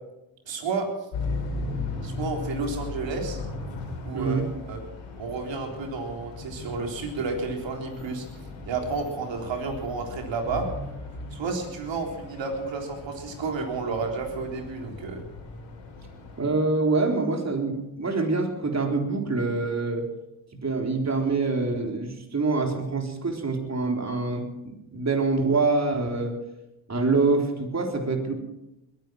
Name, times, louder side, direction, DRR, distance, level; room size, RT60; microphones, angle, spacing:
voice 1, 0.5-0.9 2.0-3.4 4.0-4.8 5.2-8.3 8.7-10.7 11.3-15.2, right 4 dB, 65° right, 2 dB, 3.9 m, -31 dB
sound 1, 1.1-16.4, left 3 dB, 75° left, 4.8 m, -37 dB
voice 2, 4.1-4.5 16.4-20.1 20.6-26.3 26.9-28.3, right 3 dB, 35° right, 3 dB, 3.9 m, -25 dB
21.5 x 10.5 x 6.3 m, 0.94 s
supercardioid pair, 50°, 47 cm